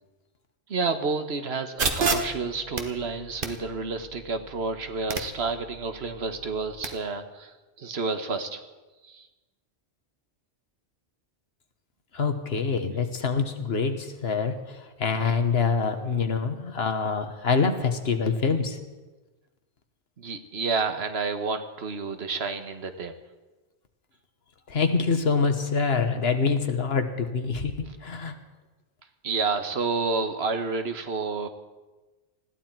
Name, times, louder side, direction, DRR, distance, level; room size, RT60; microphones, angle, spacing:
voice 1, 0.7-8.6 9.0-9.3 20.2-23.2 29.2-31.5, right 4 dB, 70° right, 8 dB, 1.4 m, -30 dB
sound 1, 1.8-6.9, right 4 dB, 55° right, 1.4 m, -32 dB
voice 2, 12.1-18.9 24.7-28.3, left 5 dB, 65° left, 7 dB, 1.5 m, -25 dB
20.5 x 15.0 x 4.5 m, 1.2 s
omnidirectional pair, 1.1 m